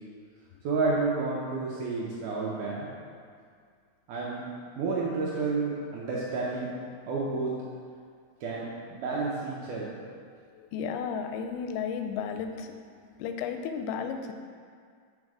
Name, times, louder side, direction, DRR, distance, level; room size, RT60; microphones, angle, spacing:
voice 1, 0.6-2.9 4.1-4.4 4.8-6.7 7.1-7.5 8.4-10.0, right 3 dB, 75° right, -5 dB, 1.9 m, -30 dB
voice 2, 10.7-12.7 13.2-14.3, left 6 dB, 90° left, 6 dB, 2.5 m, -33 dB
6.5 x 4.3 x 4.8 m, 2.1 s
omnidirectional pair, 4.3 m